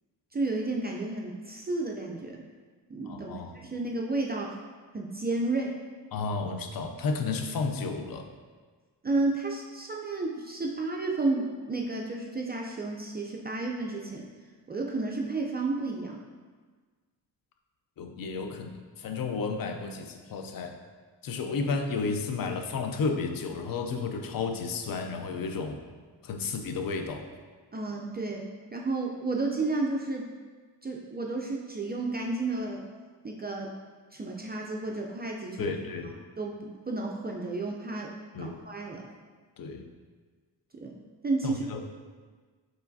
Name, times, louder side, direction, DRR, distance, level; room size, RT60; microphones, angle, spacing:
voice 1, 0.3-2.4 2.9-4.5 4.9-5.7 9.0-14.3 14.7-16.2 27.7-28.4 28.7-30.3 30.8-32.8 33.2-33.7 34.1-35.7 36.4-38.1 38.4-39.0 40.8-41.0 41.2-41.8, right 3 dB, 25° right, -1 dB, 0.4 m, -32 dB
voice 2, 3.0-3.6 6.1-8.3 18.0-20.8 21.2-25.8 26.2-27.3 35.6-36.1 38.3-38.6 39.6-39.9 41.4-41.8, left 4 dB, 55° left, 5 dB, 0.5 m, -32 dB
4.5 x 3.1 x 2.6 m, 1.5 s
cardioid pair, 75°, 44 cm